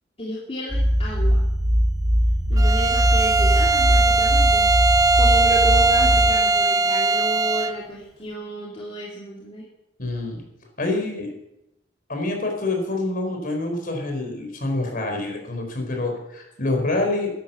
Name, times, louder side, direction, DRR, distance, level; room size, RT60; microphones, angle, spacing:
voice 1, 0.2-1.4 2.5-9.7, equal, 30° left, -4 dB, 2.6 m, -33 dB
sound 1, 0.7-6.3, equal, 85° right, 3.0 m, -20 dB
Bowed string instrument, 2.6-7.8, right 3 dB, 20° right, 0.4 m, -19 dB
voice 2, 10.0-10.4 10.8-11.3 12.1-17.3, left 2 dB, 50° left, 3 dB, 4.4 m, -26 dB
13.5 x 10.5 x 7.1 m, 0.87 s
head